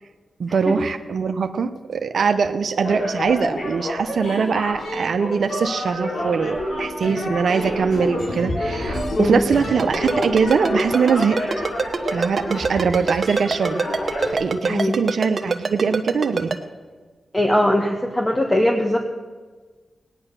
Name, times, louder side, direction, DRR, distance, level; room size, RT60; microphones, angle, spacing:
voice 1, 0.4-11.4 12.1-13.8 14.3-16.6, right 5 dB, 75° right, 8 dB, 0.7 m, -22 dB
sound 1, 2.8-14.3, left 1 dB, 80° left, 3.7 m, -28 dB
Ringtone, 9.8-16.6, right 4 dB, 55° right, 1.3 m, -23 dB
voice 2, 17.3-19.0, left 1 dB, 20° left, 2 dB, 1.6 m, -20 dB
17.5 x 10.0 x 6.8 m, 1.4 s
cardioid pair, 50°, 0 cm